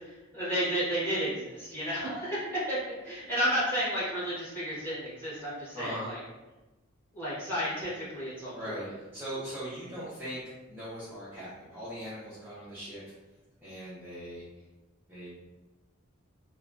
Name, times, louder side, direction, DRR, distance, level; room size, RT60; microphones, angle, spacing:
voice 1, 0.3-6.2 7.1-8.8, equal, 10° left, -11 dB, 1.4 m, -32 dB
voice 2, 5.7-6.1 8.5-13.0 13.6-14.4 15.1-15.3, equal, 10° right, -11 dB, 0.6 m, -40 dB
3.1 x 2.2 x 2.5 m, 1.1 s
head